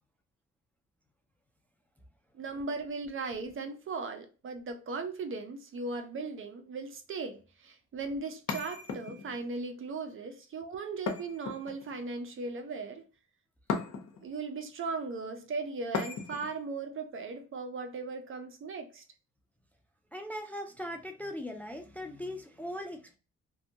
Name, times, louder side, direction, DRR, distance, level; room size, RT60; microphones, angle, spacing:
voice 1, 2.3-13.0 14.2-19.0, right 3 dB, 45° right, 0.5 m, -38 dB
sound 1, 8.5-9.4 11.1-12.0 13.7-14.3 15.9-16.6, left 5 dB, 65° left, 0.7 m, -36 dB
voice 2, 20.1-23.2, left 1 dB, 5° left, 0.4 m, -39 dB
2.7 x 2.2 x 2.7 m
cardioid pair, 90°, 30 cm